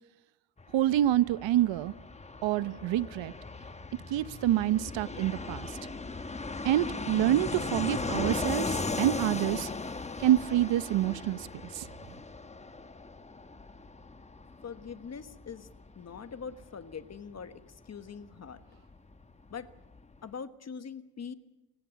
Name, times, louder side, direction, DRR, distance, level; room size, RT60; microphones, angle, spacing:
Fixed-wing aircraft airplane, 0.6-19.0 19.2-19.3 19.5-20.2, left 3 dB, 15° left, 1.1 m, -38 dB
voice 1, 0.7-1.9 2.4-3.3 4.1-5.7 6.6-9.7 10.2-11.5 11.7-11.9, right 13 dB, 70° right, 0.9 m, -27 dB
voice 2, 14.6-15.7 16.0-18.8 19.5-19.7 20.2-21.3, left 6 dB, 35° left, 1.3 m, -43 dB
29.5 x 17.0 x 8.2 m
cardioid pair, 125°, 47 cm